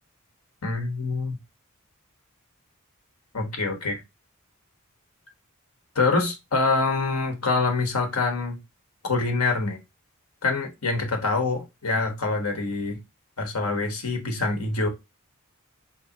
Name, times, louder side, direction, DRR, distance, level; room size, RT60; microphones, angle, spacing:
voice 1, 0.6-1.4 3.3-4.0 5.9-8.6 9.0-9.8 10.4-13.0 13.4-14.9, left 3 dB, 85° left, 1.3 m, -25 dB
4.0 x 3.2 x 2.9 m
head